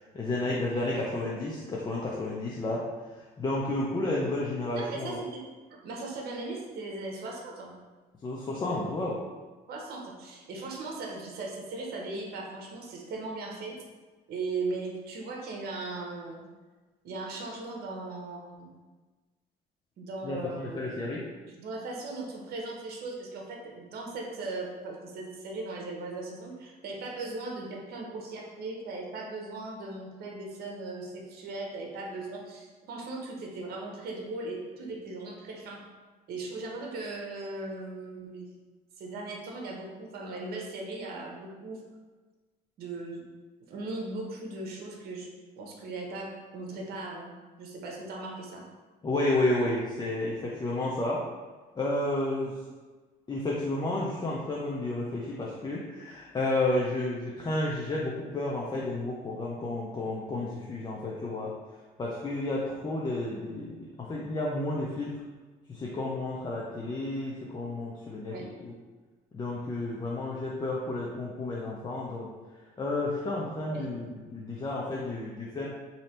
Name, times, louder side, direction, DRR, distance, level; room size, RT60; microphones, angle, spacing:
voice 1, 0.0-2.9 3.1-5.2 8.2-9.2 20.2-21.3 49.0-51.2 51.8-52.6 53.3-61.5 62.0-65.2 65.7-68.7 69.3-75.7, left 2 dB, 25° left, -4 dB, 0.6 m, -31 dB
voice 2, 4.7-5.4 5.7-7.7 9.7-13.8 14.3-16.4 17.0-18.7 20.0-20.8 21.6-35.8 36.3-38.5 39.0-41.8 42.8-43.2 43.7-45.3 45.6-48.6 68.3-68.4 73.7-73.9, right 3 dB, 65° right, 0 dB, 0.9 m, -38 dB
3.2 x 2.8 x 4.2 m, 1.3 s
cardioid pair, 110°, 17 cm